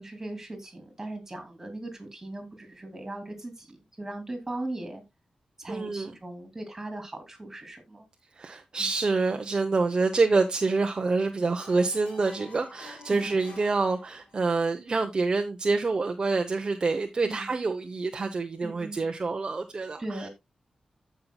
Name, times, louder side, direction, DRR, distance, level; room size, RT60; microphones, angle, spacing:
voice 1, 0.0-5.0 5.6-8.1 8.8-8.9 13.1-13.5 17.2-17.4 18.6-19.0 20.0-20.3, right 2 dB, 20° right, 2.8 m, -38 dB
voice 2, 5.7-6.2 8.3-20.3, right 3 dB, 40° right, 0.8 m, -27 dB
sound 1, 11.6-14.5, left 2 dB, 70° left, 3.7 m, -48 dB
15.0 x 5.6 x 2.2 m
wide cardioid pair, 145°, 2 cm